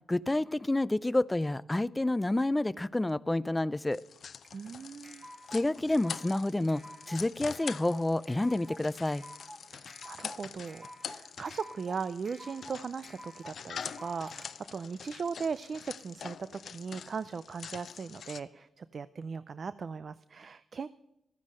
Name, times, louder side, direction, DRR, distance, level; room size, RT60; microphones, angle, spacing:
voice 1, 0.1-4.0 5.5-9.2, left 1 dB, 15° left, 0.4 m, -29 dB
sound 1, 3.9-18.4, left 7 dB, 65° left, 0.6 m, -45 dB
sound 2, 4.4-14.5, equal, 35° right, 2.5 m, -50 dB
voice 2, 4.5-5.2 9.7-20.9, right 5 dB, 55° right, 0.4 m, -38 dB
14.0 x 9.7 x 6.3 m
cardioid pair, 70°, 0 cm